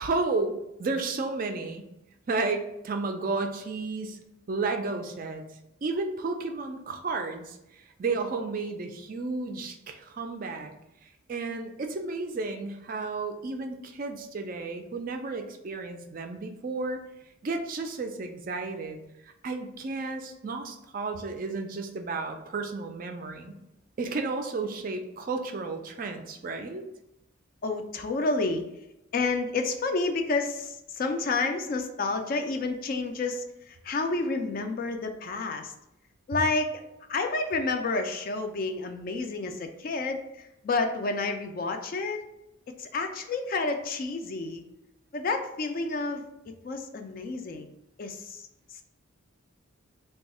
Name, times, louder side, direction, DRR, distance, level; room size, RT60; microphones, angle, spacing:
voice 1, 0.0-1.9 2.3-4.2 4.5-5.4 5.8-10.7 11.0-17.0 17.4-19.0 19.4-23.6 24.0-26.9, right 3 dB, 40° right, 5 dB, 0.3 m, -32 dB
voice 2, 27.6-28.7 29.1-35.7 36.3-36.8 37.1-42.2 42.8-44.6 45.1-46.2 46.6-47.7 48.0-48.4 48.7-48.8, left 3 dB, 40° left, 5 dB, 0.3 m, -30 dB
3.5 x 2.3 x 4.1 m, 0.89 s
head